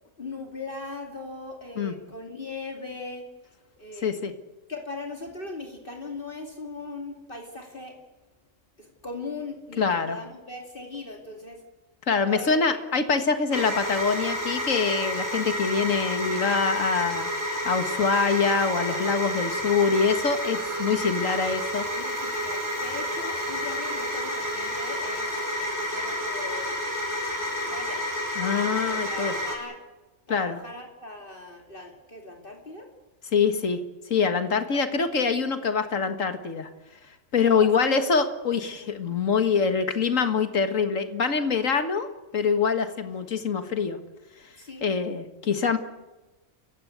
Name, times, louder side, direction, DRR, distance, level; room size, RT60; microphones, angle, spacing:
voice 1, 0.2-3.3 3.8-4.3 4.7-8.0 8.8-11.6 12.2-12.8 21.9-26.8 27.5-28.0 28.9-29.8 30.3-32.9 34.6-35.1 37.4-37.9 44.6-44.9, left 3 dB, 40° left, 2 dB, 2.8 m, -39 dB
voice 2, 4.0-4.3 9.8-10.2 12.1-21.8 28.4-29.3 30.3-30.6 33.3-33.8 34.1-36.7 37.3-42.1 42.3-44.0 44.8-45.8, left 5 dB, 80° left, 9 dB, 2.0 m, -24 dB
sound 1, 13.5-29.6, left 1 dB, 15° right, 5.2 m, -30 dB
29.5 x 15.5 x 8.1 m, 1.1 s
omnidirectional pair, 1.3 m